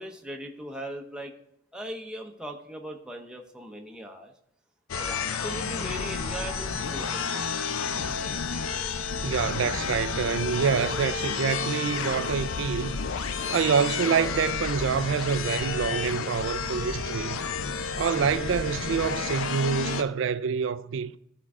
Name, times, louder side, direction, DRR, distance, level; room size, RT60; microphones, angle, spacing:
voice 1, 0.0-1.3 1.7-4.3 5.0-7.6 18.2-18.5, equal, 5° right, 0.6 m, -39 dB
sound 1, 4.9-20.0, left 5 dB, 85° left, 0.6 m, -31 dB
voice 2, 9.2-12.9 13.5-17.4 18.0-21.2, right 6 dB, 60° right, 0.3 m, -27 dB
13.0 x 4.5 x 3.6 m
head